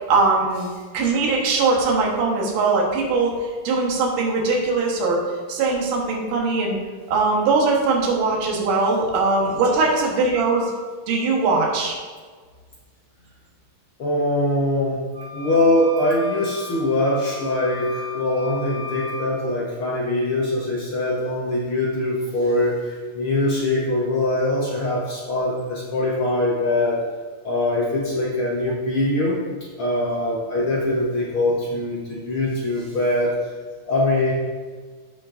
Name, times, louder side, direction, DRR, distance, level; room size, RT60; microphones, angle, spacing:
voice 1, 0.1-0.7 0.9-5.2 5.5-6.8 7.1-12.0, right 3 dB, 75° right, -1 dB, 2.8 m, -21 dB
voice 2, 14.0-15.0 15.3-27.0 27.4-29.4 29.8-33.4 33.8-34.3, left 1 dB, 65° left, -5 dB, 1.3 m, -22 dB
sound 1, 15.1-19.3, left 2 dB, 55° right, 1.2 m, -36 dB
15.0 x 5.2 x 2.6 m, 1.5 s
omnidirectional pair, 3.9 m